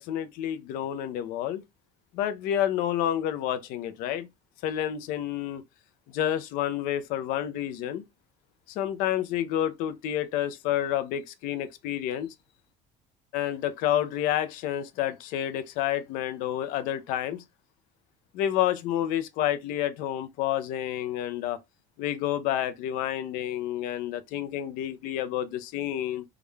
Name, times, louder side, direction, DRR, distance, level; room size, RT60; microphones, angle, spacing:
voice 1, 0.0-1.6 2.1-4.3 4.6-5.6 6.1-8.0 8.7-12.3 13.3-17.4 18.3-21.6 22.0-26.2, left 11 dB, 60° left, 0.5 m, -29 dB
3.6 x 2.2 x 3.2 m
cardioid pair, 160°, 16 cm